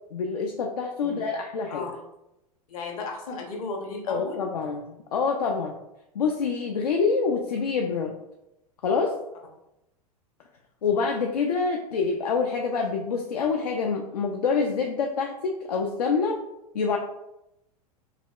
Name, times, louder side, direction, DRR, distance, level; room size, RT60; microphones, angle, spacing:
voice 1, 0.1-1.8 4.1-5.8 6.1-8.1 8.8-9.1 10.8-16.4 16.7-17.0, left 5 dB, 75° left, 2 dB, 0.4 m, -26 dB
voice 2, 1.7-2.0 2.7-4.4, left 3 dB, 60° left, 2 dB, 0.8 m, -35 dB
4.8 x 2.2 x 2.3 m, 0.87 s
figure-of-eight pair, 90°, 20 cm